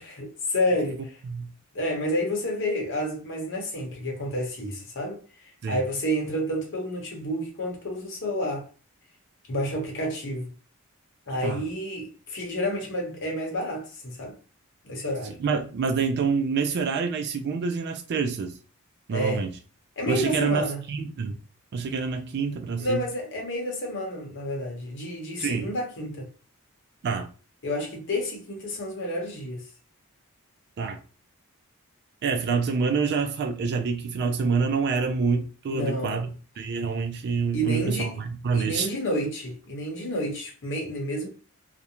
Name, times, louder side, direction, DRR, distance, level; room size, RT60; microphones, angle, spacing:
voice 1, 0.0-1.2 1.7-5.2 5.7-8.7 9.5-10.5 11.3-14.3 14.8-15.4 19.1-19.4 20.0-20.8 22.8-26.3 27.6-29.6 35.7-36.3 37.5-38.2 38.5-41.3, equal, 60° left, 0.9 m, -30 dB
voice 2, 15.2-18.5 19.1-19.5 20.1-21.4 21.7-23.0 25.4-25.7 27.0-27.3 30.8-31.0 32.2-36.3 36.6-38.9, right 5 dB, 50° right, 0.3 m, -27 dB
2.4 x 2.1 x 2.9 m
head